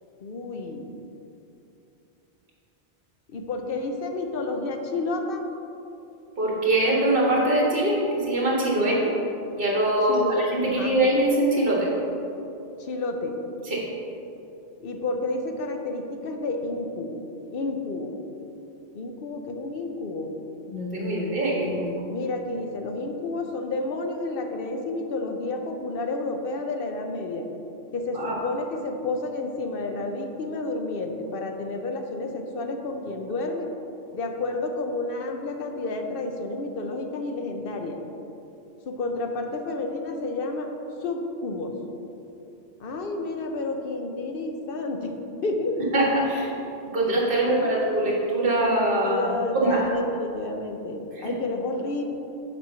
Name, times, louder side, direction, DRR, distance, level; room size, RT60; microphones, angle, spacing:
voice 1, 0.2-0.9 3.3-5.5 8.7-9.2 10.1-11.0 12.8-13.4 14.8-17.3 17.5-18.2 18.9-20.3 22.1-27.5 27.9-33.7 34.1-38.0 38.9-40.7 41.0-41.8 42.8-45.1 45.4-45.8 47.5-47.9 49.0-52.0, left 2 dB, 60° left, 4 dB, 0.8 m, -30 dB
voice 2, 6.4-9.0 9.6-11.9 13.6-13.8 20.7-21.9 28.1-28.4 45.9-46.5 46.9-49.8 51.1-51.3, right 1 dB, 50° right, -4 dB, 1.7 m, -23 dB
7.5 x 4.4 x 5.5 m, 2.9 s
omnidirectional pair, 1.2 m